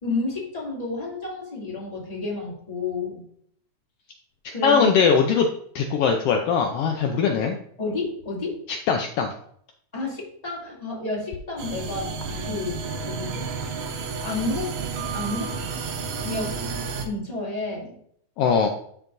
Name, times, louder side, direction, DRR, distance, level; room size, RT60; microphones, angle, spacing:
voice 1, 0.0-3.2 4.5-5.0 7.8-8.6 9.9-12.1 12.4-12.8 13.0-13.5 14.2-14.7 15.1-15.5 16.2-16.6 17.0-17.9, left 3 dB, 15° left, -4 dB, 2.2 m, -30 dB
voice 2, 4.6-5.5 5.7-7.6 8.7-9.3 18.4-18.7, left 6 dB, 80° left, 3 dB, 1.4 m, -21 dB
sound 1, 11.6-17.1, right 4 dB, 75° right, 2.3 m, -31 dB
12.0 x 4.6 x 2.6 m, 0.65 s
omnidirectional pair, 3.4 m